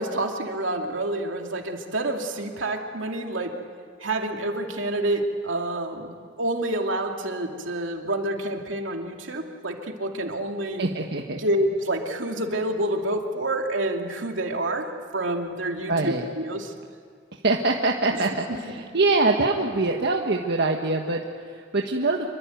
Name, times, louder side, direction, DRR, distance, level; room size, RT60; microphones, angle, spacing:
voice 1, 0.0-3.5 4.0-6.1 6.4-10.8 11.4-16.7 18.5-18.6, right 1 dB, 80° right, 3 dB, 2.6 m, -28 dB
voice 2, 10.8-11.4 15.9-16.3 17.4-22.3, right 3 dB, 60° right, 1 dB, 1.5 m, -24 dB
27.0 x 24.0 x 9.2 m, 2.1 s
head